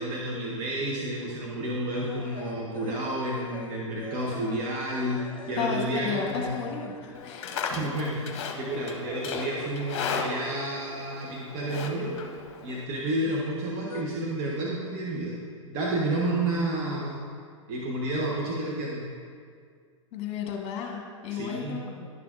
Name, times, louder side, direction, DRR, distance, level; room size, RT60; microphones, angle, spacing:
voice 1, 0.0-5.2 5.5-6.7 7.7-12.2 12.6-15.3 15.6-17.2 17.7-19.0 21.3-21.8, right 1 dB, 40° right, -4 dB, 1.1 m, -30 dB
sound 1, 2.0-10.0 10.2-11.4 11.7-13.1 13.4-14.0, left 6 dB, 85° left, 0.4 m, -45 dB
voice 2, 5.6-7.5 13.2-13.3 20.1-22.1, left 6 dB, 40° left, 1 dB, 1.3 m, -33 dB
Livestock farm animals working animals, 7.2-12.8, left 5 dB, 55° left, 0.8 m, -36 dB
11.0 x 5.9 x 2.5 m, 2.1 s
figure-of-eight pair, 100°, 17 cm